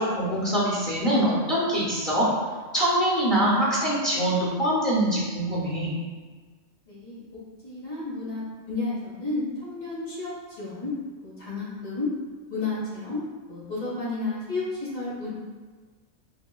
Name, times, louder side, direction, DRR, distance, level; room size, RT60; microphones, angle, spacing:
voice 1, 0.0-2.3 2.7-6.0, right 1 dB, 45° left, -8 dB, 0.9 m, -24 dB
voice 2, 6.9-7.2 7.6-10.9 11.2-12.1 12.5-13.2 13.5-15.3, left 3 dB, 75° left, -8 dB, 1.9 m, -32 dB
4.2 x 3.1 x 2.2 m, 1.4 s
omnidirectional pair, 1.4 m